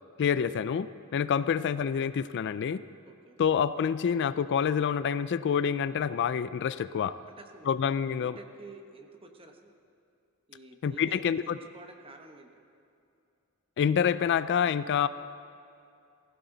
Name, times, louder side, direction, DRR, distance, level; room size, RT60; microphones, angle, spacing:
voice 1, 0.2-0.9 1.1-2.8 3.4-7.2 7.7-8.4 10.8-11.6 13.8-15.1, left 7 dB, 50° left, 14 dB, 0.3 m, -27 dB
voice 2, 3.1-3.4 7.4-7.8 8.1-9.7 10.5-12.5, right 3 dB, 25° right, 4 dB, 1.1 m, -50 dB
19.5 x 15.5 x 4.0 m, 2.5 s
head